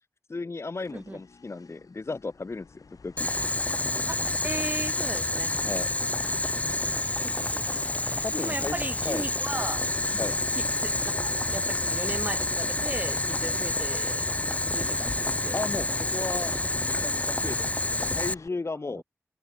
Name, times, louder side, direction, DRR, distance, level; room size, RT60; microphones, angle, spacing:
voice 1, 0.3-3.4 5.6-5.9 8.2-9.3 10.2-10.4 15.5-16.5 16.8-19.0, left 3 dB, 50° left, 0.9 m, -35 dB
sound 1, 0.8-18.5, left 4 dB, 80° left, 3.7 m, -50 dB
Boiling, 3.2-18.3, left 2 dB, 25° left, 0.5 m, -28 dB
voice 2, 4.1-5.5 7.2-7.9 8.4-9.9 10.1-14.3 14.7-15.6 18.9-19.0, right 2 dB, 25° right, 1.3 m, -37 dB
open air
cardioid pair, 50°, 6 cm